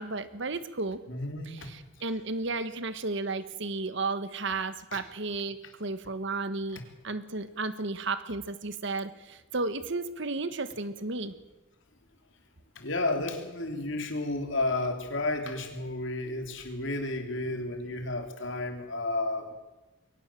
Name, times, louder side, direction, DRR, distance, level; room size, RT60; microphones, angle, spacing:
voice 1, 0.0-1.0 1.5-11.3, right 3 dB, 60° right, 13 dB, 1.4 m, -33 dB
voice 2, 1.1-1.7 4.9-5.0 6.7-6.8 12.8-19.5, left 2 dB, 60° left, 5 dB, 3.3 m, -32 dB
22.5 x 18.0 x 7.4 m, 1.1 s
head